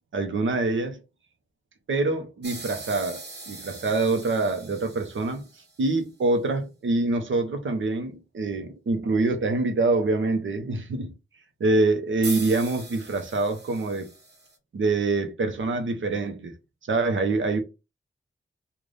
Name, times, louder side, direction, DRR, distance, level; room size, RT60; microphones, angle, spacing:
voice 1, 0.1-1.0 1.9-5.4 5.8-11.1 11.6-14.1 14.7-16.5 16.9-17.6, right 3 dB, 75° right, 0.9 m, -25 dB
sound 1, 2.4-5.9 12.2-14.6, right 3 dB, 60° right, 1.1 m, -41 dB
3.3 x 2.5 x 3.9 m
wide cardioid pair, 115°, 20 cm